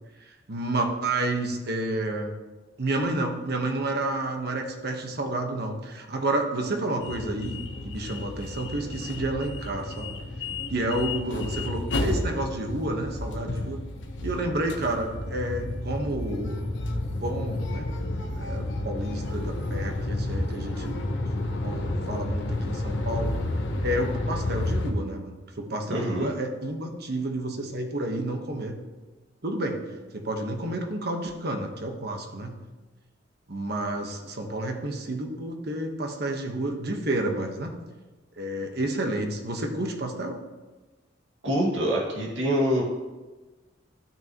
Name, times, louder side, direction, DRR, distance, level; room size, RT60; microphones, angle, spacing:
voice 1, 0.5-2.3 2.8-10.2 10.7-13.8 14.2-17.9 18.4-21.0 21.6-23.3 23.8-28.7 29.4-29.8 30.1-32.6 33.5-37.7 38.4-40.4, right 1 dB, 55° right, 3 dB, 1.2 m, -30 dB
sound 1, 7.0-24.9, left 1 dB, 70° left, 1.0 m, -31 dB
voice 2, 25.9-26.3 41.4-42.8, equal, 80° right, -4 dB, 2.1 m, -25 dB
13.5 x 6.3 x 3.0 m, 1.2 s
head